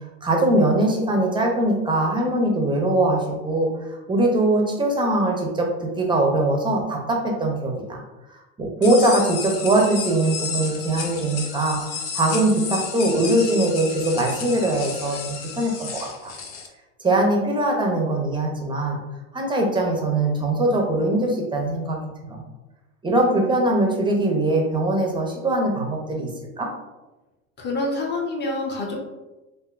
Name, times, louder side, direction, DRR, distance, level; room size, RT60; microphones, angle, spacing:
voice 1, 0.2-8.0 8.3-11.8 12.1-16.3 17.0-19.0 19.3-22.0 22.3-22.4 23.0-26.3 26.6-26.7, right 1 dB, 10° right, 1 dB, 0.6 m, -22 dB
sound 1, 8.8-16.7, left 5 dB, 90° left, 0.7 m, -32 dB
voice 2, 27.6-29.0, left 2 dB, 25° left, -1 dB, 0.9 m, -26 dB
3.5 x 2.6 x 2.4 m, 1.1 s
hypercardioid pair, 100°, 40 cm